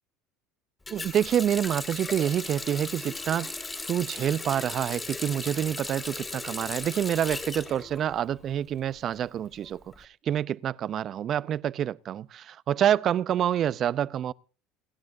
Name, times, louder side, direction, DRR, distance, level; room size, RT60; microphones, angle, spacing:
Water tap faucet, 0.9-8.6 8.9-10.0, left 3 dB, 15° left, 2.5 m, -37 dB
voice 1, 0.9-3.5 3.9-14.3, right 10 dB, 45° right, 0.6 m, -27 dB
29.0 x 10.5 x 2.7 m
hypercardioid pair, 85°, 0 cm